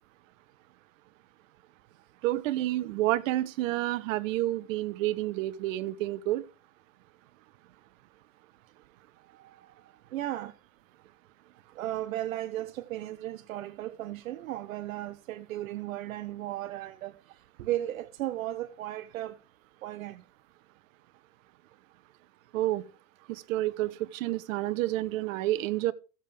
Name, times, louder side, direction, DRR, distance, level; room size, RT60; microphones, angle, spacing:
voice 1, 2.2-6.4 22.5-22.8 23.3-25.9, right 15 dB, 70° right, 1.2 m, -29 dB
voice 2, 9.3-10.6 11.7-19.4 19.8-20.2, right 14 dB, 90° right, 0.8 m, -36 dB
15.0 x 7.4 x 3.4 m
supercardioid pair, 115°, 40 cm